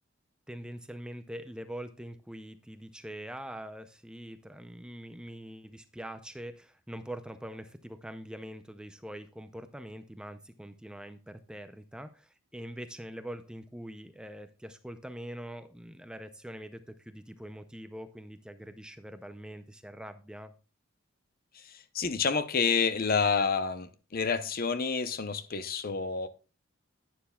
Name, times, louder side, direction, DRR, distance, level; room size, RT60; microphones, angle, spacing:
voice 1, 0.5-20.5, equal, 5° right, 0.5 m, -43 dB
voice 2, 21.6-26.3, left 5 dB, 45° left, 0.7 m, -29 dB
11.0 x 9.4 x 2.3 m
head